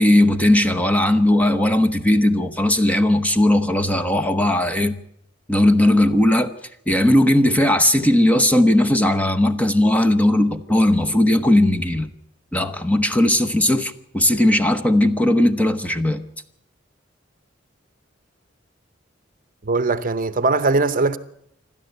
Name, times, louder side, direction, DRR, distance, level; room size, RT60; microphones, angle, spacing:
voice 1, 0.0-5.0 5.5-6.5 6.9-12.1 12.5-16.3, left 1 dB, 10° left, 1.0 m, -17 dB
voice 2, 19.6-21.2, right 3 dB, 45° right, 0.9 m, -20 dB
27.5 x 12.5 x 8.0 m
head